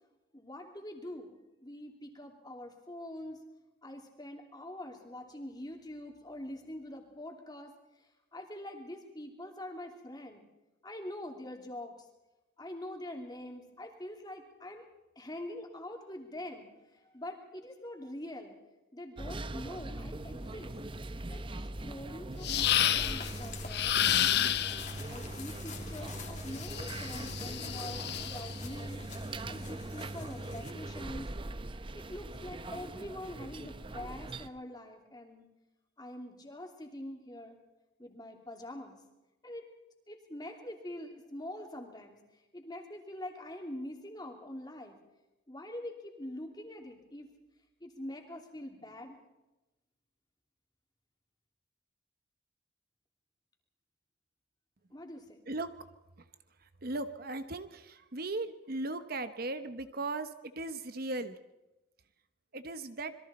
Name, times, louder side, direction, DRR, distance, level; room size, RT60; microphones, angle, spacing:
voice 1, 0.3-3.4 3.8-10.4 10.8-12.1 12.6-14.9 15.1-18.6 18.9-20.7 21.3-24.6 25.1-29.0 29.5-31.3 31.9-35.5 36.0-37.6 38.0-39.0 39.4-39.7 40.1-45.0 45.5-47.3 47.8-49.2 54.9-55.4, left 1 dB, 20° left, 2 dB, 3.1 m, -44 dB
sound 1, 19.2-34.5, right 2 dB, 25° right, 0.7 m, -41 dB
sound 2, 22.4-23.3 23.7-24.9 26.6-28.5, left 11 dB, 55° left, 0.7 m, -30 dB
sound 3, 22.9-30.7, left 4 dB, 40° left, 2.9 m, -46 dB
voice 2, 56.6-61.4 62.5-63.2, right 2 dB, 50° right, 10 dB, 1.0 m, -37 dB
27.0 x 22.5 x 4.3 m, 1.0 s
head